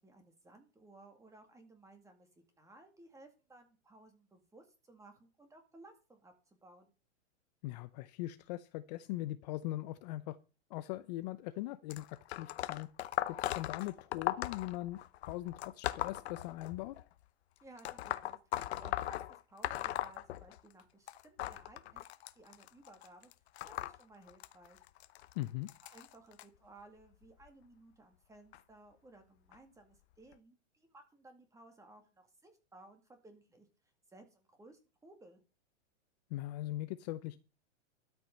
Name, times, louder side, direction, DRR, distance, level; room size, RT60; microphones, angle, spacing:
voice 1, 0.0-2.3 2.6-6.9 17.6-22.0 22.4-23.3 23.7-24.8 25.8-33.7 34.1-35.4, right 2 dB, 10° right, 2.2 m, -59 dB
voice 2, 7.6-10.4 10.7-12.1 12.4-12.9 13.3-15.0 15.2-17.0 25.4-25.7 36.3-37.4, left 16 dB, 35° left, 0.6 m, -40 dB
sound 1, 11.9-17.0 17.8-20.8 21.1-26.4 27.2-27.5 28.5-28.6 29.5-29.6 30.3-30.4, left 14 dB, 60° left, 0.9 m, -39 dB
12.5 x 6.0 x 5.3 m
hypercardioid pair, 140°, 36 cm